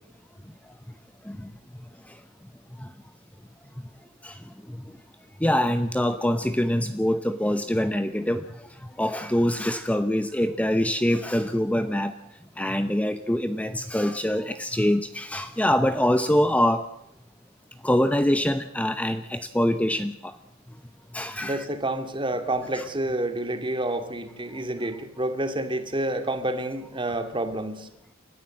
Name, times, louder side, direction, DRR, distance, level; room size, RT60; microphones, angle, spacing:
voice 1, 5.4-8.4 9.0-12.1 12.6-16.9 17.8-20.3 21.1-21.7 22.7-22.8, left 1 dB, 5° left, 10 dB, 0.7 m, -24 dB
voice 2, 21.4-27.9, right 1 dB, 25° right, 8 dB, 2.3 m, -29 dB
29.5 x 13.5 x 7.5 m, 0.85 s
head